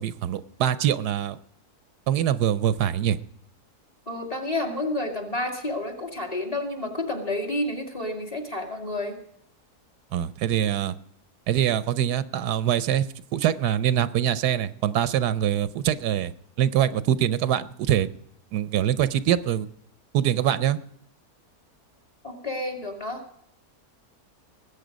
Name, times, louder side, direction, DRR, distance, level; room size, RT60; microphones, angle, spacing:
voice 1, 0.0-1.4 2.1-3.2 10.1-10.9 11.5-13.0 13.3-16.3 16.6-18.1 18.5-19.7 20.1-20.8, right 10 dB, 85° right, 15 dB, 1.2 m, -24 dB
voice 2, 4.1-9.2 22.2-23.2, left 1 dB, 25° left, 3 dB, 2.2 m, -30 dB
19.5 x 8.3 x 5.1 m, 0.71 s
omnidirectional pair, 1.7 m